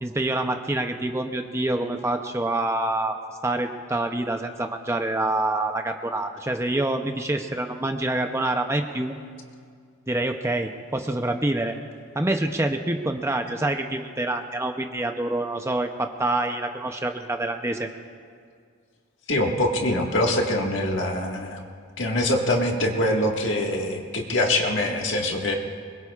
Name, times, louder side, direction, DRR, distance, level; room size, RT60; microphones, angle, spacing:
voice 1, 0.0-3.2 3.4-9.1 10.1-11.8 12.1-17.9, right 2 dB, 15° right, 5 dB, 0.6 m, -26 dB
voice 2, 19.3-21.6 22.0-25.5, left 1 dB, 60° left, 0 dB, 1.7 m, -24 dB
24.5 x 22.0 x 2.4 m, 2.1 s
head